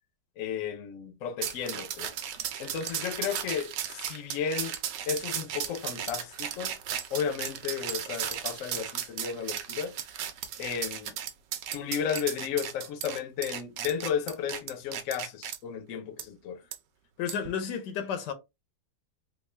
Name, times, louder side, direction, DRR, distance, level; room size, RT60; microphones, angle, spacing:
voice 1, 0.4-2.1 2.6-4.8 5.1-6.8 7.1-9.9 10.6-11.2 11.7-16.6, left 7 dB, 60° left, 0.9 m, -33 dB
sound 1, 1.4-15.6 16.2-16.3 16.7-16.8 17.3-17.5, right 10 dB, 80° right, 1.3 m, -35 dB
voice 2, 17.2-18.3, left 7 dB, 85° left, 1.3 m, -32 dB
3.5 x 2.4 x 3.3 m
omnidirectional pair, 1.8 m